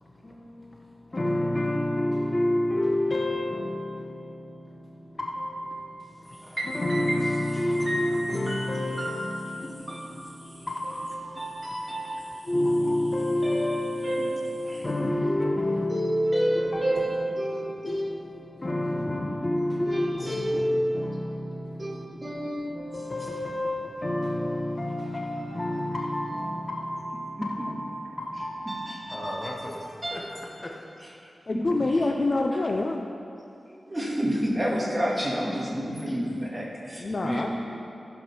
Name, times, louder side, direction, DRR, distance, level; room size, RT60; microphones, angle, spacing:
voice 1, 0.0-30.8, left 1 dB, 25° left, -1 dB, 1.1 m, -30 dB
voice 2, 6.4-7.2 7.9-8.7 9.0-9.5 9.9-10.4 11.3-12.3 13.4-14.9 15.9-18.0 19.6-20.9 21.8-22.8 28.7-29.6 30.0-30.2 31.0-32.0 32.5-32.6 33.9-37.5, equal, 15° right, -4 dB, 2.0 m, -30 dB
voice 3, 31.5-33.1 37.0-37.5, left 2 dB, 40° left, 2 dB, 0.5 m, -26 dB
14.5 x 5.2 x 6.0 m, 2.7 s
wide cardioid pair, 125°, 0 cm